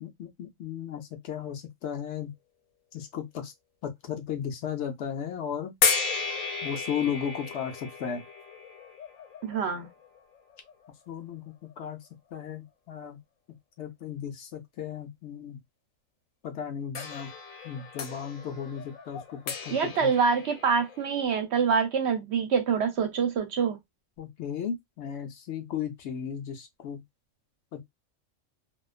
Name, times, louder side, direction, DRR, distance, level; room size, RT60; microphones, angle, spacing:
voice 1, 0.0-2.3 2.9-3.5 3.8-5.7 6.6-8.2 11.1-12.0 12.3-13.2 13.8-15.6 16.4-17.3 17.6-20.1 24.2-27.0 27.7-27.8, left 8 dB, 70° left, 0.8 m, -35 dB
sound 1, 5.8-10.9 11.7-11.8 16.9-21.2, left 5 dB, 90° left, 1.0 m, -34 dB
voice 2, 9.4-9.9 19.7-23.8, right 6 dB, 65° right, 0.8 m, -26 dB
2.4 x 2.3 x 2.3 m
omnidirectional pair, 1.3 m